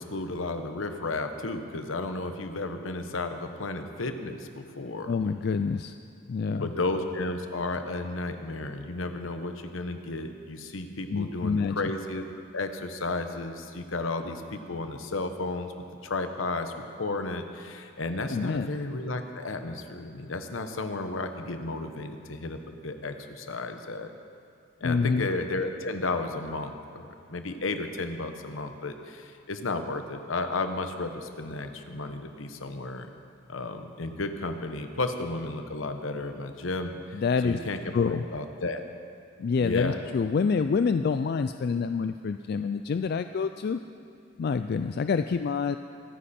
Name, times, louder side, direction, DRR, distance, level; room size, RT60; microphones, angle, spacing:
voice 1, 0.0-5.1 6.6-12.2 12.5-15.7 16.0-24.1 24.8-33.1 33.5-36.9 37.4-37.8 38.1-38.8 39.6-40.0, left 2 dB, 80° left, 7 dB, 1.0 m, -33 dB
voice 2, 5.1-5.9 6.3-6.7 11.1-11.9 18.3-18.7 24.8-25.3 37.1-37.6 37.9-38.2 39.4-43.8 44.4-45.8, left 5 dB, 50° left, 10 dB, 0.3 m, -27 dB
24.0 x 9.9 x 4.3 m, 2.4 s
head